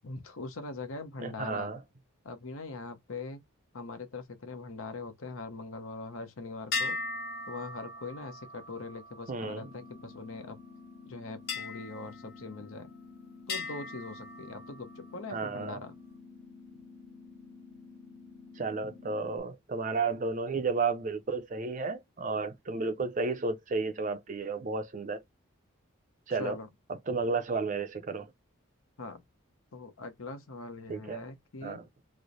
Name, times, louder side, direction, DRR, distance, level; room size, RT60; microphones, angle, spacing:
voice 1, 0.0-1.7 2.2-3.4 3.7-7.0 7.5-10.6 11.0-12.9 13.5-16.0 26.3-26.7 29.0-29.2 29.7-31.8, left 3 dB, 75° left, 0.8 m, -42 dB
voice 2, 1.2-1.8 9.3-9.7 15.3-15.8 18.6-25.2 26.3-26.6 27.1-28.3 30.9-31.2 31.6-31.8, right 4 dB, 35° right, 0.5 m, -32 dB
sound 1, 6.7-10.4 11.5-13.0 13.5-15.2, left 3 dB, 50° left, 1.1 m, -39 dB
sound 2, 9.4-19.4, left 4 dB, 20° left, 0.6 m, -51 dB
3.1 x 2.0 x 3.8 m
head